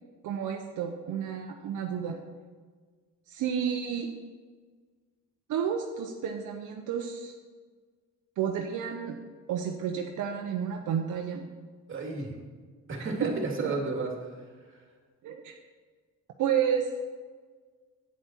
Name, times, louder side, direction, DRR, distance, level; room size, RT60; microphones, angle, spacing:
voice 1, 0.2-2.2 3.3-4.1 5.5-7.3 8.4-9.2 9.5-11.4 13.2-13.3 13.6-13.7 15.2-15.6 16.4-16.9, right 8 dB, 80° right, 2 dB, 0.8 m, -31 dB
voice 2, 11.9-12.3 12.9-14.8, right 3 dB, 45° right, 1 dB, 2.3 m, -33 dB
8.5 x 8.2 x 4.4 m, 1.5 s
cardioid pair, 90°, 30 cm